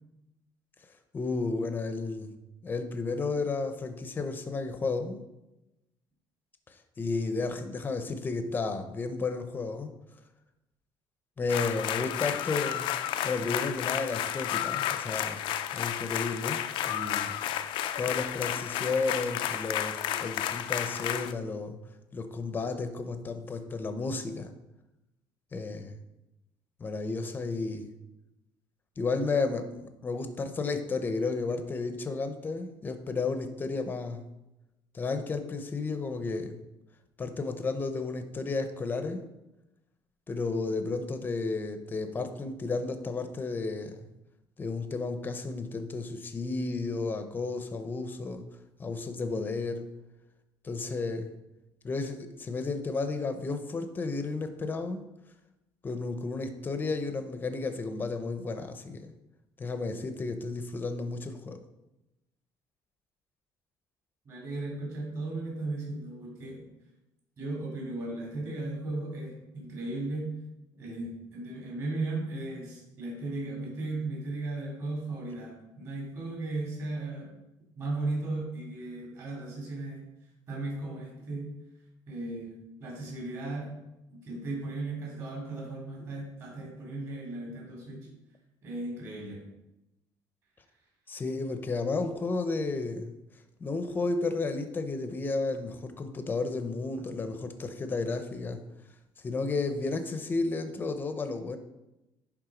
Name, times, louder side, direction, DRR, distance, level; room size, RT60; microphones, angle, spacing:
voice 1, 1.1-2.3 2.6-5.2 6.7-9.9 11.4-12.9 13.2-15.4 15.7-16.6 16.9-17.4 18.0-21.8 22.1-24.5 25.5-26.0 26.8-27.9 29.0-34.2 34.9-36.6 37.2-39.2 40.3-44.1 44.6-48.5 48.8-49.9 50.6-51.3 51.8-55.0 55.8-59.1 59.6-61.6 91.1-93.1 93.6-98.6 99.2-101.6, left 3 dB, 20° left, 8 dB, 0.7 m, -32 dB
sound 1, 11.5-21.3, left 11 dB, 65° left, 0.4 m, -32 dB
voice 2, 64.2-66.6 67.4-70.3 70.8-77.3 77.8-80.0 80.5-81.5 82.1-82.5 82.8-83.7 84.1-88.1 88.6-89.4, right 2 dB, 40° right, -3 dB, 3.2 m, -36 dB
10.5 x 3.6 x 5.1 m, 0.94 s
cardioid pair, 160°, 9 cm